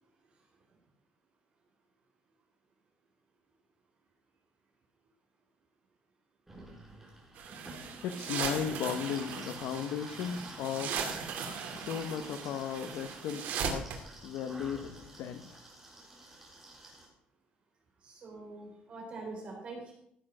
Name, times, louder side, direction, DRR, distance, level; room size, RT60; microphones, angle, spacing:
sound 1, 6.5-17.1, right 1 dB, 10° right, 3.9 m, -50 dB
sound 2, 7.4-14.0, right 7 dB, 75° right, 2.4 m, -38 dB
voice 1, 8.0-11.0 11.8-15.6, left 8 dB, 90° left, 8 dB, 1.0 m, -36 dB
voice 2, 18.0-19.9, right 3 dB, 40° right, -1 dB, 4.0 m, -44 dB
15.5 x 7.7 x 6.1 m, 0.71 s
cardioid pair, 175°, 3 cm